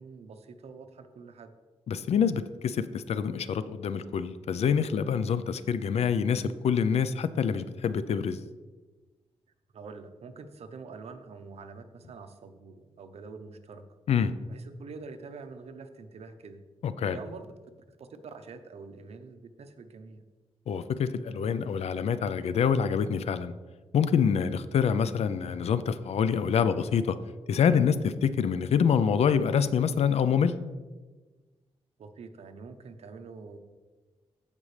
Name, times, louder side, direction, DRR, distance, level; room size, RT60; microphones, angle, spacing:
voice 1, 0.0-1.5 9.7-13.9 14.5-16.6 17.1-17.5 18.0-20.2 32.0-33.6, right 4 dB, 75° right, 8 dB, 0.8 m, -45 dB
voice 2, 1.9-8.4 14.1-14.3 16.8-17.2 20.7-23.5 23.9-27.2 27.5-30.5, left 7 dB, 75° left, 13 dB, 0.5 m, -26 dB
15.0 x 5.3 x 3.3 m, 1.3 s
wide cardioid pair, 100°, 11 cm